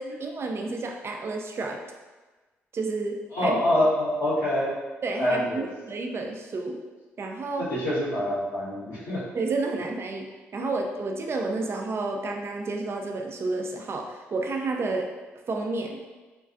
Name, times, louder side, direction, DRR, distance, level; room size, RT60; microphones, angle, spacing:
voice 1, 0.0-1.8 2.7-3.6 5.0-6.8 7.2-7.7 9.3-15.1 15.5-16.0, right 3 dB, 45° right, 2 dB, 0.4 m, -30 dB
voice 2, 3.3-4.7 5.2-5.7 7.6-9.2, left 1 dB, 80° left, -14 dB, 0.8 m, -25 dB
2.3 x 2.2 x 2.4 m, 1.2 s
hypercardioid pair, 45°, 6 cm